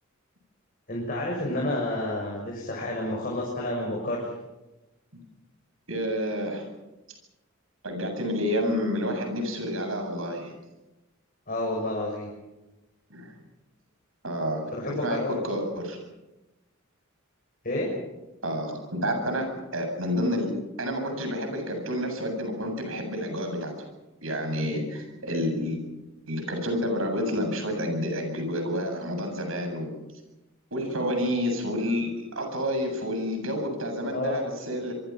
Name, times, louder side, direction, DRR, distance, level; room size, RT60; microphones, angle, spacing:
voice 1, 0.9-4.3 11.5-12.3 14.7-15.4 17.6-17.9 34.1-34.4, left 1 dB, 45° left, -2 dB, 6.3 m, -30 dB
voice 2, 5.9-6.7 7.8-10.5 13.1-13.3 14.2-14.6 15.0-16.0 18.4-20.5 20.8-23.7 24.2-25.8 26.3-29.9 30.7-34.9, equal, 75° right, 5 dB, 7.9 m, -29 dB
26.5 x 23.5 x 5.9 m, 1.0 s
head